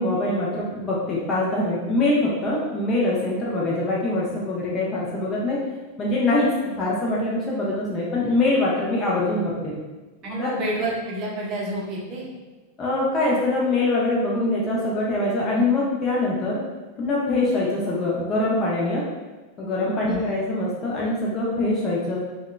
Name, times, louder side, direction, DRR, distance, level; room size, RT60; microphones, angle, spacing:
voice 1, 0.0-5.6 6.0-6.5 6.8-9.7 10.3-10.5 12.8-16.6 17.0-19.0 19.6-22.2, left 2 dB, 25° left, -5 dB, 0.5 m, -23 dB
voice 2, 10.2-12.3 20.1-20.2, right 1 dB, 35° right, -3 dB, 0.6 m, -29 dB
2.8 x 2.2 x 2.2 m, 1.2 s
figure-of-eight pair, 90°, 0 cm